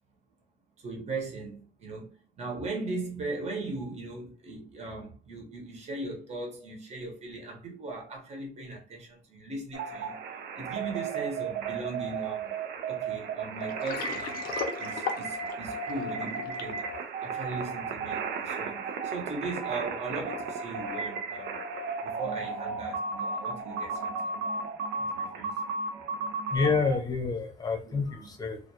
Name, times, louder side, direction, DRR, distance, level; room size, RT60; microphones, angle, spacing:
voice 1, 0.8-10.2 10.6-12.5 12.9-14.4 14.8-16.9 17.2-21.6 22.0-24.3 25.1-25.6 27.8-28.3, right 3 dB, 40° right, 0.9 m, -38 dB
sound 1, 9.7-27.0, right 4 dB, 75° right, 0.5 m, -34 dB
Water, 13.6-16.8, left 6 dB, 60° left, 0.6 m, -36 dB
voice 2, 26.5-28.6, left 4 dB, 25° left, 0.7 m, -28 dB
2.3 x 2.3 x 2.7 m
cardioid pair, 110°, 17 cm